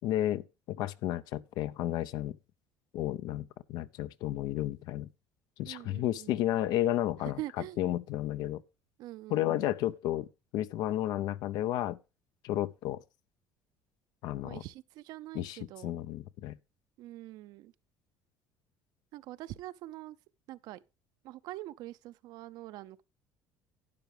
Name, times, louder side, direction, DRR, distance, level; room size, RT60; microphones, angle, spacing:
voice 1, 0.0-2.4 2.9-5.1 5.6-7.4 7.8-8.6 9.3-10.3 10.5-12.0 12.4-13.0 14.2-14.6 15.3-16.6, left 13 dB, 70° left, 0.6 m, -32 dB
voice 2, 5.6-6.4 7.2-7.8 9.0-9.6 14.4-15.9 17.0-17.7 19.1-20.2 20.5-20.8 21.2-23.0, right 16 dB, 70° right, 0.6 m, -44 dB
12.0 x 9.3 x 3.3 m
cardioid pair, 110°, 7 cm